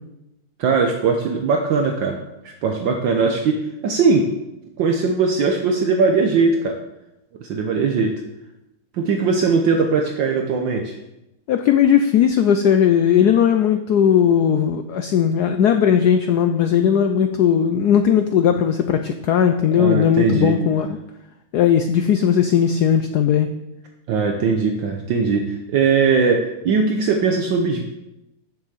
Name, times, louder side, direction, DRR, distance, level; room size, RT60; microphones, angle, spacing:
voice 1, 0.6-2.2 2.6-4.3 4.8-6.8 7.4-8.1 8.9-11.0 19.8-20.6 24.1-27.8, right 4 dB, 65° right, 3 dB, 1.4 m, -20 dB
voice 2, 11.5-21.0 21.5-23.5, left 8 dB, 85° left, 7 dB, 0.9 m, -17 dB
7.3 x 6.5 x 7.3 m, 0.91 s
omnidirectional pair, 2.4 m